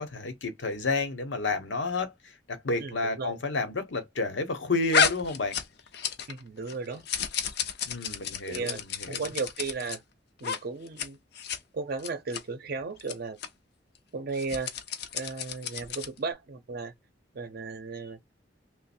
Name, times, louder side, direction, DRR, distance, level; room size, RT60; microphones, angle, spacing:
voice 1, 0.0-5.6 7.9-9.3, left 3 dB, 85° left, 0.9 m, -31 dB
voice 2, 2.8-3.4 6.3-7.0 8.4-8.8 9.1-10.0 10.4-11.2 11.7-13.4 14.1-14.7 15.1-16.9 17.3-18.2, right 4 dB, 55° right, 0.6 m, -35 dB
sound 1, 4.9-6.4 6.7-10.0 10.4-10.6 10.9-11.1 11.4-11.6 12.0-12.4 13.0-13.1 13.4-13.5 14.3-16.2, left 6 dB, 60° left, 0.5 m, -31 dB
3.0 x 2.0 x 4.1 m
head